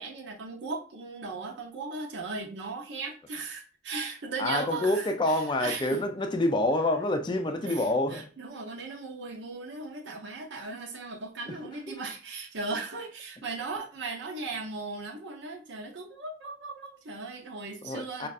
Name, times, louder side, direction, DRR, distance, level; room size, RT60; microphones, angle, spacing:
voice 1, 0.0-6.0 7.6-18.3, right 3 dB, 90° right, 0.8 m, -37 dB
voice 2, 4.4-8.3 10.5-10.7 11.5-11.6 11.9-12.0 17.8-18.3, left 1 dB, 25° left, 0.4 m, -27 dB
5.2 x 2.4 x 2.4 m
head